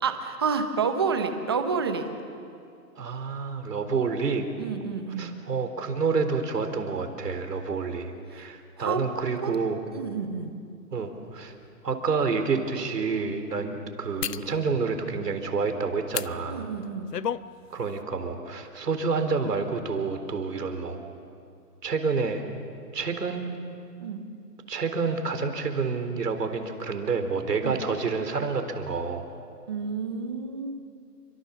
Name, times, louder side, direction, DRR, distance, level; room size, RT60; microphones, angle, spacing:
voice 1, 0.0-2.1 4.6-5.4 8.8-9.0 9.4-10.6 16.5-17.1 24.0-24.2 27.6-27.8 29.7-30.7, right 5 dB, 15° right, 7 dB, 0.8 m, -29 dB
voice 2, 3.0-4.4 5.2-9.8 10.9-11.5 11.8-16.7 17.7-21.0 21.8-22.4 22.9-23.4 24.7-29.2, right 4 dB, 70° right, 7 dB, 4.0 m, -28 dB
sound 1, 11.4-11.5 12.1-12.2 14.2-14.5 16.1-16.3 16.8-17.5 17.8-18.0, left 9 dB, 75° left, 0.9 m, -31 dB
28.5 x 24.5 x 7.1 m, 2.4 s
hypercardioid pair, 170°, 49 cm